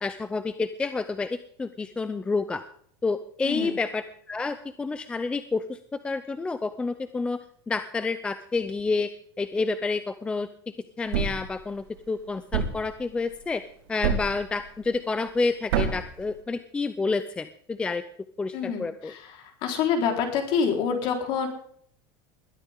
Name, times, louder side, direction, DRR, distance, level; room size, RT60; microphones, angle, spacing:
voice 1, 0.0-2.6 3.0-9.1 9.4-10.5 11.0-13.6 13.9-18.0 18.4-19.1, left 3 dB, 10° left, 12 dB, 0.5 m, -29 dB
Thump thud, 11.1-11.5 12.5-12.9 14.0-14.4 15.7-16.1, right 6 dB, 85° right, 4.6 m, -26 dB
voice 2, 18.5-19.2 19.6-21.5, left 6 dB, 40° left, 4 dB, 4.1 m, -26 dB
21.0 x 13.5 x 3.7 m, 0.62 s
supercardioid pair, 170°, 13 cm